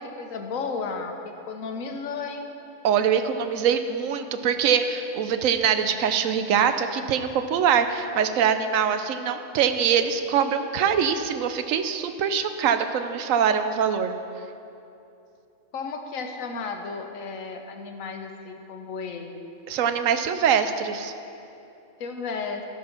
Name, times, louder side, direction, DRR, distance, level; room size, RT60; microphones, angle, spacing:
voice 1, 0.0-2.4 15.7-19.4 22.0-22.6, left 4 dB, 85° left, 4 dB, 1.3 m, -33 dB
voice 2, 2.8-14.1 19.7-21.1, right 7 dB, 80° right, 9 dB, 1.0 m, -23 dB
13.5 x 6.1 x 5.9 m, 2.8 s
omnidirectional pair, 1.4 m